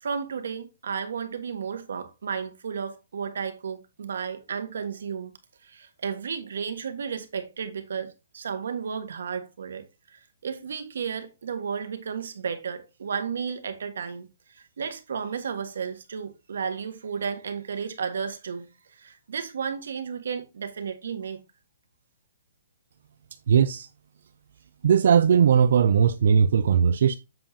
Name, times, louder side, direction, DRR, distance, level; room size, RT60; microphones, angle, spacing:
voice 1, 0.0-5.3 5.6-21.4, right 6 dB, 75° right, 1.5 m, -33 dB
voice 2, 23.5-23.9 24.8-27.2, right 7 dB, 60° right, 0.4 m, -19 dB
7.6 x 7.0 x 2.8 m
hypercardioid pair, 170°, 0 cm